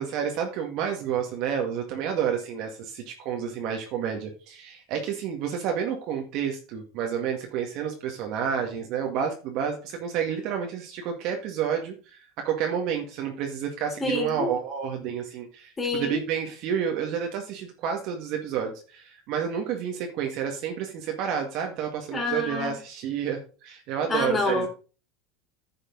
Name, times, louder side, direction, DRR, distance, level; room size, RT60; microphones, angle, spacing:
voice 1, 0.0-24.7, right 8 dB, 55° right, 2 dB, 1.9 m, -30 dB
voice 2, 14.0-14.5 15.8-16.2 22.1-22.8 24.1-24.7, left 2 dB, 15° left, 1 dB, 3.8 m, -27 dB
10.5 x 6.5 x 4.0 m, 0.35 s
supercardioid pair, 135°, 0 cm